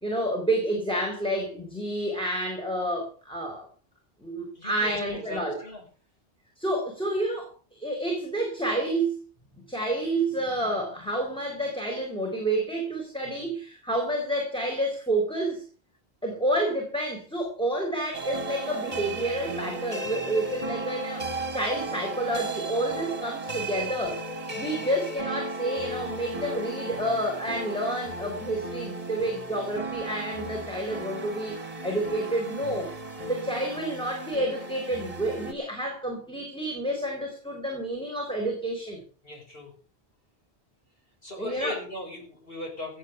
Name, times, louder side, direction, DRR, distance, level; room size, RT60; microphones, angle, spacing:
voice 1, 0.0-3.7 4.2-5.6 6.6-9.2 9.7-15.6 16.2-24.2 24.6-32.9 33.2-39.0 41.4-41.7, right 1 dB, 5° left, 1 dB, 4.1 m, -29 dB
voice 2, 4.5-5.8 13.2-13.5 24.5-24.8 39.2-39.7 41.2-43.0, left 1 dB, 60° left, 0 dB, 6.0 m, -39 dB
sound 1, 18.1-35.5, right 2 dB, 35° right, 2.2 m, -35 dB
17.5 x 8.5 x 6.8 m, 0.39 s
omnidirectional pair, 1.1 m